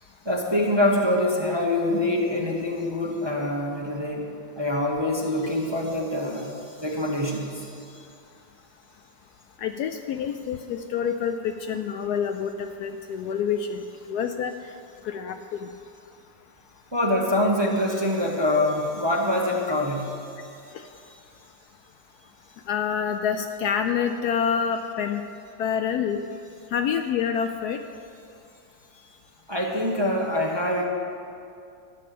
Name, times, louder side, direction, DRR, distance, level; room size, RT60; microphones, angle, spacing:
voice 1, 0.2-8.0 16.9-20.2 29.5-30.8, left 1 dB, 20° right, -1 dB, 1.0 m, -25 dB
voice 2, 9.6-14.7 15.0-15.7 20.7-20.9 22.7-25.2 25.6-26.3 26.7-27.8, left 7 dB, 70° left, 7 dB, 1.0 m, -27 dB
13.0 x 6.5 x 8.5 m, 2.4 s
omnidirectional pair, 1.9 m